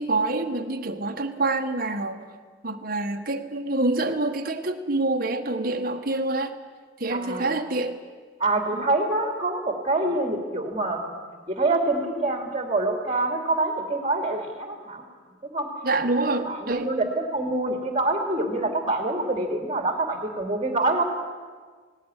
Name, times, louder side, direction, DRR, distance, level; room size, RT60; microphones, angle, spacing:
voice 1, 0.0-2.2 2.6-6.6 7.0-8.0 8.7-8.8 15.8-16.9, right 2 dB, 45° right, 5 dB, 1.6 m, -26 dB
voice 2, 7.1-7.5 8.4-11.1 11.5-15.0 15.4-15.7 16.2-21.0, right 2 dB, 25° right, 4 dB, 2.8 m, -26 dB
18.5 x 18.0 x 9.9 m, 1.5 s
head